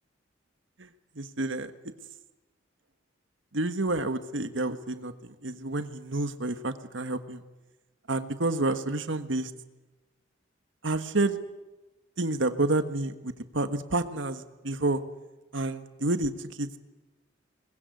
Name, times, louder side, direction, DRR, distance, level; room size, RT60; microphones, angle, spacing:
voice 1, 1.2-1.7 3.5-7.4 8.1-9.5 10.8-11.4 12.2-15.0 15.5-16.3 16.6-16.7, right 2 dB, 70° right, 10 dB, 1.5 m, -29 dB
23.0 x 21.0 x 9.6 m, 1.1 s
head